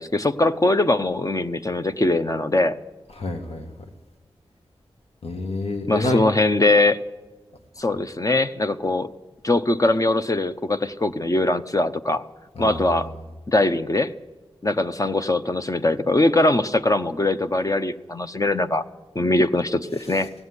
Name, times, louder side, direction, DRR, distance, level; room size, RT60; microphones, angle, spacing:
voice 1, 0.0-2.8 5.9-7.0 7.8-9.1 9.4-12.2 12.6-13.1 13.5-14.1 14.6-18.8 19.1-20.3, left 2 dB, 35° left, 9 dB, 0.8 m, -21 dB
voice 2, 3.2-3.7 5.2-6.2 12.6-13.0 20.0-20.3, left 2 dB, 85° left, 3 dB, 1.9 m, -28 dB
18.0 x 15.0 x 9.7 m, 1.2 s
wide cardioid pair, 60°, 10 cm